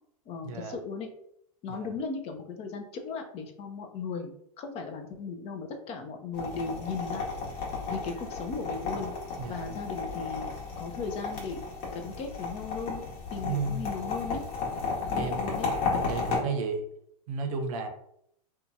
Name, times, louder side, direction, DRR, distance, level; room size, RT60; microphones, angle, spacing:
voice 1, 0.3-1.1 1.6-7.3 7.9-9.1 9.5-11.6 11.9-13.0 13.3-14.4 15.1-15.7, left 4 dB, 30° left, 5 dB, 0.5 m, -37 dB
sound 1, 6.3-16.4, left 4 dB, 55° left, 1.1 m, -33 dB
voice 2, 9.4-9.7 13.4-13.9 15.2-15.5 16.0-16.8 17.3-17.9, right 4 dB, 60° right, 5 dB, 0.6 m, -33 dB
2.7 x 2.2 x 2.6 m, 0.73 s
hypercardioid pair, 105°, 20 cm